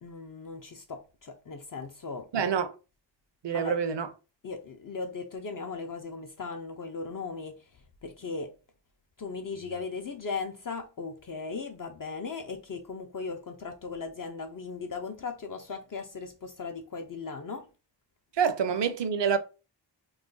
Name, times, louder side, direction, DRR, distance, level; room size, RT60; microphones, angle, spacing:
voice 1, 0.0-2.3 3.5-3.8 4.4-7.6 8.0-8.5 9.2-17.7, left 4 dB, 50° left, 0.5 m, -37 dB
voice 2, 2.3-2.7 3.4-4.1 18.3-19.4, right 6 dB, 70° right, 0.6 m, -27 dB
2.4 x 2.2 x 3.7 m
wide cardioid pair, 70°, 45 cm